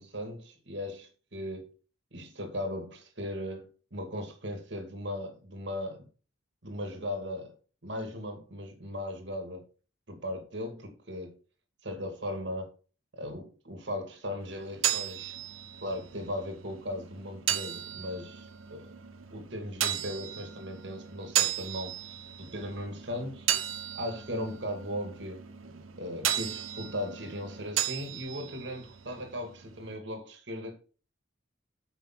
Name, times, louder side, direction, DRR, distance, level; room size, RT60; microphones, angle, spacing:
voice 1, 0.0-1.7 2.1-6.1 6.6-7.5 7.8-9.6 10.1-11.4 11.8-12.7 13.1-15.4 15.8-18.9 19.3-23.5 23.9-25.4 26.0-30.8, left 1 dB, 60° right, 2.2 m, -38 dB
sound 1, 14.4-30.0, right 11 dB, 85° right, 1.0 m, -35 dB
8.9 x 5.7 x 3.9 m
head